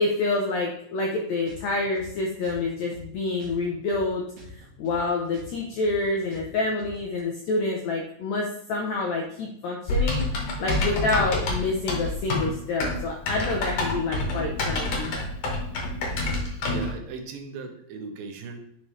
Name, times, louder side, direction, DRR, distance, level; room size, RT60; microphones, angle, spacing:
voice 1, 0.0-4.2 4.5-10.3 10.6-15.1, left 3 dB, 80° left, 0 dB, 1.6 m, -27 dB
sound 1, 1.4-4.0 4.3-7.2, right 1 dB, 65° right, 3.1 m, -46 dB
Typing, 9.9-16.9, left 2 dB, 60° left, 2.1 m, -27 dB
voice 2, 16.6-18.6, right 5 dB, 85° right, 5 dB, 2.7 m, -38 dB
10.0 x 4.3 x 3.2 m, 0.73 s
omnidirectional pair, 4.1 m